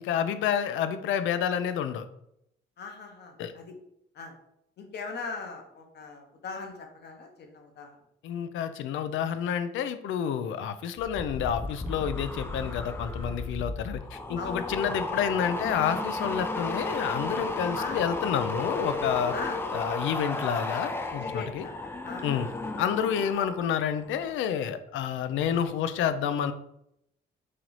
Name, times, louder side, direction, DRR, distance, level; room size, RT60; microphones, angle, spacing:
voice 1, 0.0-2.1 3.4-3.5 8.2-19.3 19.7-21.7 22.2-22.5 22.8-26.5, left 8 dB, 80° left, 10 dB, 0.4 m, -29 dB
voice 2, 2.8-3.7 4.1-4.3 4.8-7.9 14.4-14.6 17.7-18.0 19.3-19.6 21.2-21.8 22.0-22.3, left 4 dB, 55° left, 3 dB, 0.9 m, -39 dB
sound 1, 11.0-23.6 23.9-24.3, left 2 dB, 10° left, 0.3 m, -34 dB
3.1 x 2.9 x 3.9 m, 0.77 s
cardioid pair, 90°, 20 cm